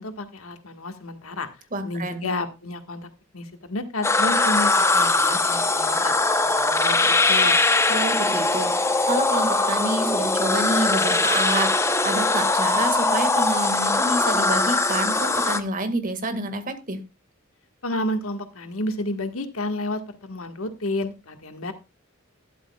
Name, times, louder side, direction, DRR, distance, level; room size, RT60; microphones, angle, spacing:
voice 1, 0.0-1.5 1.8-3.1 3.3-6.1 6.4-7.5 17.8-21.7, left 1 dB, 90° left, 8 dB, 1.6 m, -30 dB
voice 2, 1.7-2.3 7.9-17.0, right 2 dB, 40° right, 9 dB, 1.9 m, -28 dB
sound 1, 4.0-15.6, left 2 dB, 15° left, 0.8 m, -21 dB
12.5 x 11.5 x 2.3 m, 0.26 s
head